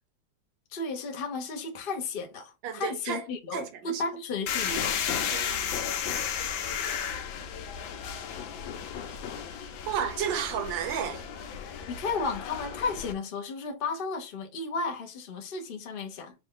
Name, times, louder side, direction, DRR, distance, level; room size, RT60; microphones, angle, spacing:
voice 1, 0.7-5.0 11.9-16.3, left 4 dB, 40° left, 0.8 m, -33 dB
voice 2, 2.6-3.2 3.5-4.0 5.3-5.6 9.9-11.2, right 8 dB, 75° right, 1.5 m, -32 dB
sound 1, 4.5-13.1, left 8 dB, 85° left, 1.5 m, -33 dB
5.3 x 2.4 x 3.8 m
omnidirectional pair, 2.1 m